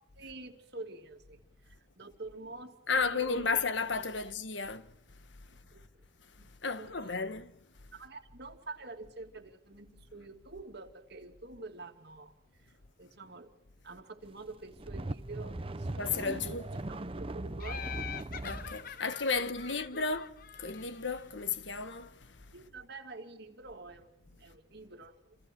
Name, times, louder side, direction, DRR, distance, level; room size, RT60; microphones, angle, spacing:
voice 1, 0.2-3.6 5.7-5.8 6.4-6.5 6.8-7.3 7.9-12.3 12.6-12.7 13.0-13.5 13.8-16.6 16.9-17.9 19.3-20.1 22.5-25.4, right 3 dB, 60° right, 2.6 m, -47 dB
voice 2, 2.9-4.9 6.4-7.5 16.0-16.7 18.4-22.5, left 4 dB, 75° left, 1.3 m, -33 dB
sound 1, 14.5-18.8, right 1 dB, 30° right, 0.8 m, -39 dB
Laughter, 17.6-21.2, left 8 dB, 50° left, 1.0 m, -44 dB
28.5 x 28.0 x 4.6 m
head